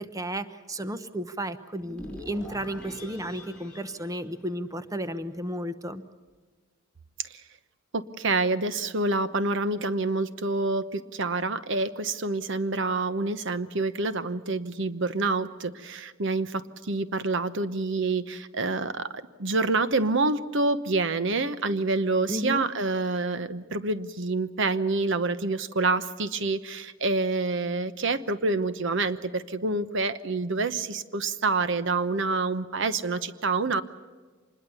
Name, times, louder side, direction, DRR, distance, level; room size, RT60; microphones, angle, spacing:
voice 1, 0.0-6.0 22.3-22.6, equal, 15° right, 11 dB, 0.9 m, -33 dB
sound 1, 1.8-5.0, left 1 dB, 5° left, 5.6 m, -45 dB
voice 2, 7.9-33.8, right 3 dB, 60° right, 13 dB, 0.9 m, -27 dB
26.0 x 21.0 x 7.0 m, 1.4 s
head